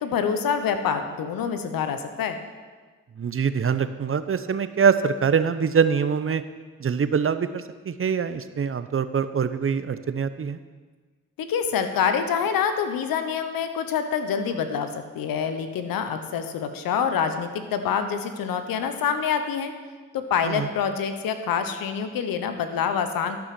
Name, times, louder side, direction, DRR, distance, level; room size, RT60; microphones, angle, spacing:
voice 1, 0.0-2.4 11.4-14.9 15.1-19.7 20.1-23.4, left 7 dB, 80° left, 8 dB, 1.0 m, -26 dB
voice 2, 3.2-6.4 6.8-10.6 20.4-20.7, right 6 dB, 40° right, 12 dB, 0.7 m, -24 dB
13.0 x 6.1 x 6.0 m, 1.4 s
supercardioid pair, 45°, 34 cm